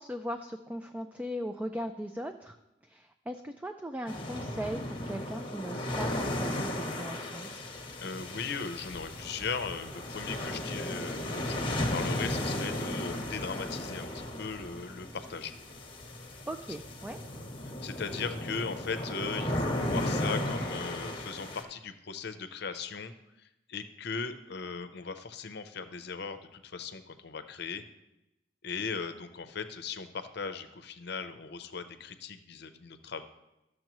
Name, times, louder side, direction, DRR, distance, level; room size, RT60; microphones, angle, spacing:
voice 1, 0.0-2.6 2.8-7.5 16.5-17.2, equal, 10° right, 6 dB, 0.3 m, -38 dB
sound 1, 4.1-21.6, left 1 dB, 30° left, 1.1 m, -35 dB
voice 2, 8.0-15.5 17.8-23.1 23.4-27.8 28.6-33.2, left 5 dB, 60° left, 10 dB, 0.7 m, -38 dB
13.5 x 6.4 x 3.0 m, 0.92 s
head